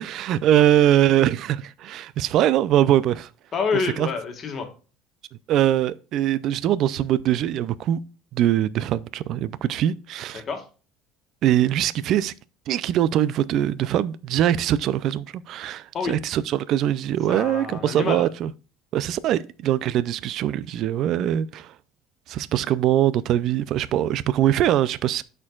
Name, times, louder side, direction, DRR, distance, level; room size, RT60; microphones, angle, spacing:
voice 1, 0.0-3.3 4.0-4.1 5.5-8.0 8.3-10.4 11.4-12.3 12.7-18.5 18.9-21.7 22.3-25.2, right 11 dB, 55° right, 0.4 m, -22 dB
voice 2, 3.5-4.7 10.3-10.6 15.9-16.2 17.3-18.3, left 5 dB, 35° left, 1.7 m, -28 dB
13.0 x 4.5 x 2.4 m
cardioid pair, 130°, 0 cm